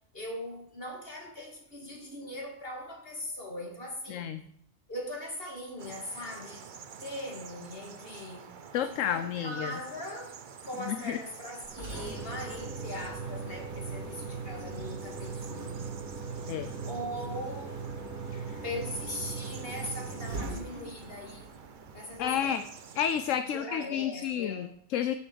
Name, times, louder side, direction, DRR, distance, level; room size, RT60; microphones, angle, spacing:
voice 1, 0.1-4.4 4.9-6.7 7.0-8.5 8.9-10.3 10.6-15.9 16.8-17.8 18.6-21.5 21.9-22.7 23.5-24.8, left 1 dB, 40° left, 2.9 m, -40 dB
voice 2, 4.1-4.4 8.7-9.8 10.9-11.2 16.5-16.7 18.3-18.4 22.2-22.6 23.0-25.1, left 9 dB, 70° left, 1.0 m, -31 dB
sound 1, 5.8-23.4, right 6 dB, 45° right, 0.7 m, -49 dB
Engine, 11.6-22.6, right 4 dB, 80° right, 2.6 m, -39 dB
13.0 x 6.5 x 6.5 m
omnidirectional pair, 1.5 m